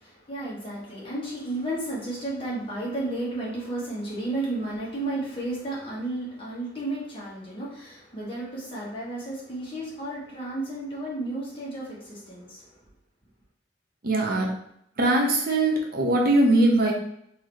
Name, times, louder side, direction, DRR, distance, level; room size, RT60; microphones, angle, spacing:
voice 1, 0.0-12.6, right 2 dB, 30° left, -6 dB, 1.5 m, -33 dB
voice 2, 14.0-14.5 15.0-16.9, right 2 dB, 55° right, 0 dB, 0.7 m, -21 dB
3.9 x 2.8 x 3.1 m, 0.75 s
head